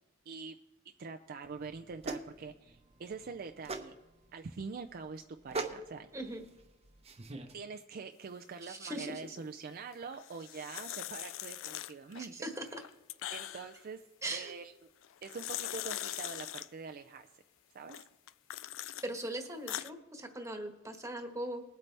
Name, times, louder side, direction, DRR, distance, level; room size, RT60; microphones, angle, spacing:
voice 1, 0.3-0.6 1.0-4.0 4.3-6.1 7.5-12.3 13.3-14.0 14.3-14.7 15.2-17.3 17.7-18.0, right 5 dB, 45° right, 5 dB, 0.4 m, -44 dB
sound 1, 1.4-7.5, right 3 dB, 30° right, 0.8 m, -43 dB
voice 2, 6.1-6.4 8.7-9.2 12.2-12.8 14.2-14.5 19.0-21.6, right 1 dB, 15° right, 4 dB, 1.3 m, -40 dB
sound 2, 10.1-12.3 12.7-13.8 15.0-16.7 17.9-19.0 19.5-19.9, left 14 dB, 70° left, 0.3 m, -41 dB
20.5 x 8.3 x 3.3 m, 1.0 s
head